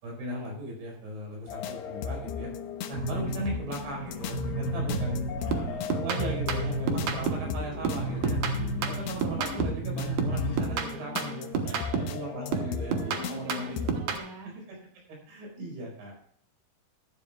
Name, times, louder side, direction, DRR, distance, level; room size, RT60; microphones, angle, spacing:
voice 1, 0.0-2.5 2.9-8.4 8.9-13.8 14.4-14.8 15.1-16.1, right 1 dB, 85° right, -1 dB, 7.3 m, -38 dB
sound 1, 1.5-14.2, left 7 dB, 85° left, 3.0 m, -37 dB
sound 2, 2.9-10.6, equal, 60° left, 3.1 m, -33 dB
sound 3, 4.9-5.2 5.5-7.5 7.8-9.9 10.2-12.2 12.5-14.3, right 6 dB, 60° right, 2.1 m, -31 dB
voice 2, 8.1-8.5 8.8-8.9 11.7-12.2 12.5-14.6, equal, 10° right, 0 dB, 1.3 m, -43 dB
14.5 x 12.0 x 2.4 m, 0.67 s
omnidirectional pair, 4.8 m